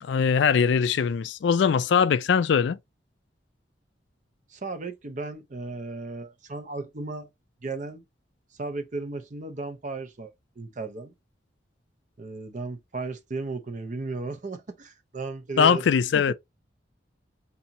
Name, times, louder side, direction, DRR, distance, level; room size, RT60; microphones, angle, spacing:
voice 1, 0.0-2.8 15.6-16.3, left 6 dB, 70° left, 0.3 m, -21 dB
voice 2, 4.5-7.3 7.6-8.0 8.6-11.1 12.2-15.8 16.1-16.3, right 3 dB, 40° right, 0.6 m, -35 dB
4.2 x 2.7 x 2.7 m
head